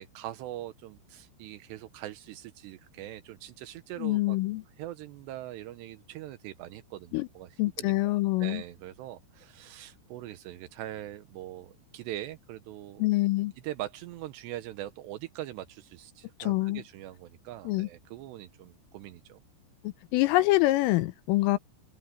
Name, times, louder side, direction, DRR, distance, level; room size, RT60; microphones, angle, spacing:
voice 1, 0.0-4.4 4.8-7.9 8.4-13.1 13.6-19.4, right 14 dB, 80° right, 2.6 m, -42 dB
voice 2, 4.0-4.6 7.1-7.3 7.6-8.6 13.0-13.5 16.4-16.8 17.7-17.9 20.1-21.6, left 18 dB, 90° left, 3.3 m, -25 dB
open air
omnidirectional pair, 6.0 m